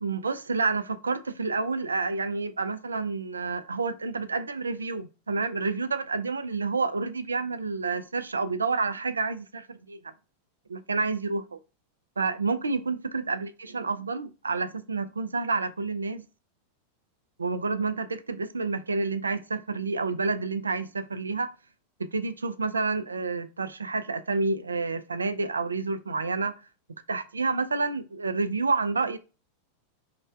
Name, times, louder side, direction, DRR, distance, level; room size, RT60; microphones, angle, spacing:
voice 1, 0.0-10.1 10.7-11.6 12.2-16.2 17.4-21.5 22.0-26.5 27.1-29.2, right 4 dB, 75° right, 0.3 m, -29 dB
3.1 x 2.2 x 4.3 m
figure-of-eight pair, 90°, 0 cm